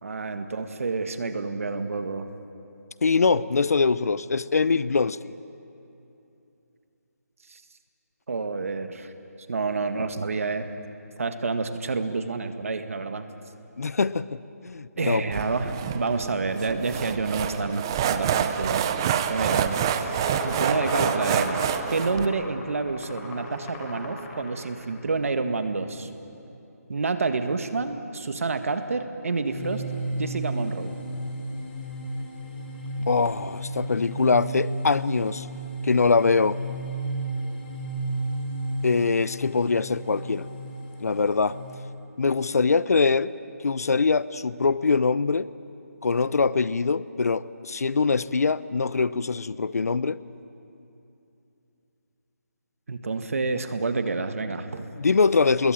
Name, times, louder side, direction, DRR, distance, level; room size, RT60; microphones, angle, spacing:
voice 1, 0.0-2.3 7.5-7.6 8.3-9.1 9.5-10.7 11.2-13.3 15.0-18.8 19.3-20.1 20.4-26.1 26.9-29.8 30.2-31.0 52.9-54.9, right 4 dB, 55° right, 8 dB, 1.8 m, -28 dB
voice 2, 3.0-5.3 13.8-15.2 33.1-35.5 35.8-36.6 38.8-40.5 41.0-41.6 42.2-43.3 43.6-45.5 46.0-50.2 55.0-55.7, left 4 dB, 65° left, 18 dB, 0.7 m, -23 dB
sound 1, 15.3-22.3, right 9 dB, 15° right, 0.5 m, -27 dB
sound 2, 19.3-25.0, left 2 dB, 20° left, 3.8 m, -37 dB
sound 3, 29.5-41.9, right 1 dB, 35° left, 5.2 m, -33 dB
27.0 x 21.5 x 9.0 m, 2.8 s
hypercardioid pair, 170°, 9 cm